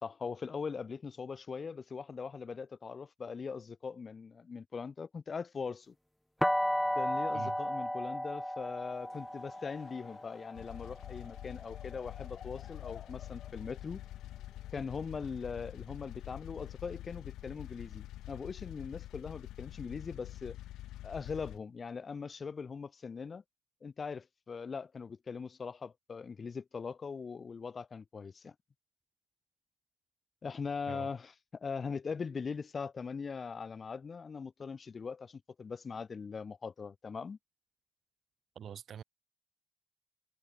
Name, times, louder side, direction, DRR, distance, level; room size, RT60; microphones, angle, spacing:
voice 1, 0.0-5.9 6.9-14.0 14.7-20.6 21.0-23.4 23.8-28.5 30.4-37.4, left 5 dB, 40° left, 2.7 m, -41 dB
sound 1, 6.4-12.2, left 1 dB, 5° left, 0.3 m, -35 dB
Laughter / Crowd, 8.9-15.3, left 8 dB, 55° left, 4.0 m, -57 dB
sound 2, 10.5-21.6, left 14 dB, 85° left, 3.4 m, -46 dB
voice 2, 38.5-39.0, right 8 dB, 60° right, 1.2 m, -44 dB
cardioid pair, 90°, 0 cm